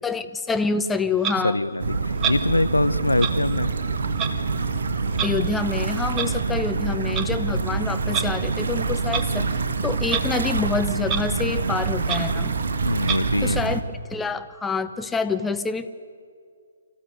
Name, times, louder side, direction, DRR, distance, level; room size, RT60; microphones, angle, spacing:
voice 1, 0.0-1.6 5.2-9.5 9.8-12.5 13.4-13.8 14.1-15.9, left 4 dB, 5° left, 10 dB, 0.7 m, -27 dB
Clock, 1.2-1.4 2.2-2.4 3.2-3.3 4.2-4.3 5.1-5.3 6.2-6.3 7.0-7.3 8.1-8.3 9.1-9.3 10.0-10.2 10.6-10.7 11.0-11.2 11.6-11.7 12.0-12.2 13.0-13.2, right 7 dB, 20° right, 1.3 m, -27 dB
voice 2, 1.4-3.7 7.5-7.9 12.8-13.6, left 2 dB, 80° left, 14 dB, 0.8 m, -24 dB
sound 1, 1.8-13.8, right 4 dB, 55° right, 1.6 m, -26 dB
25.5 x 15.0 x 9.6 m, 2.2 s
figure-of-eight pair, 135°, 0 cm